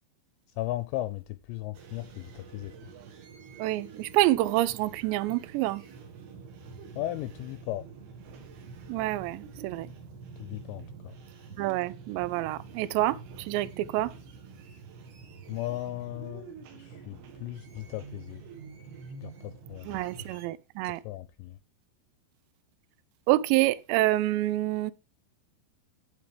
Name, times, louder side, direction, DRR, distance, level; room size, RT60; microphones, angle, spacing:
voice 1, 0.6-2.7 7.0-7.9 10.4-11.2 15.5-18.4 19.2-20.3 21.0-21.6, left 15 dB, 85° left, 2.6 m, -36 dB
sound 1, 1.7-20.5, right 5 dB, 60° right, 3.5 m, -47 dB
voice 2, 3.6-5.8 8.9-9.9 11.6-14.1 19.8-21.0 23.3-24.9, right 16 dB, 80° right, 2.7 m, -27 dB
16.0 x 5.3 x 3.4 m
omnidirectional pair, 5.5 m